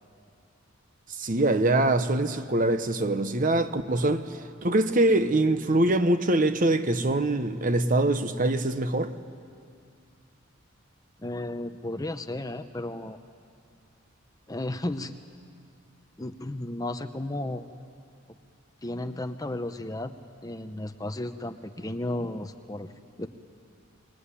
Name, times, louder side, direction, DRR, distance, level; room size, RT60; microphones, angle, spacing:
voice 1, 1.2-4.3 4.6-9.1, right 2 dB, 40° right, 1.0 m, -23 dB
voice 2, 11.2-13.2 14.5-15.2 16.2-17.6 18.8-20.1 20.4-23.3, left 1 dB, 20° left, 0.8 m, -34 dB
24.0 x 22.0 x 9.9 m
head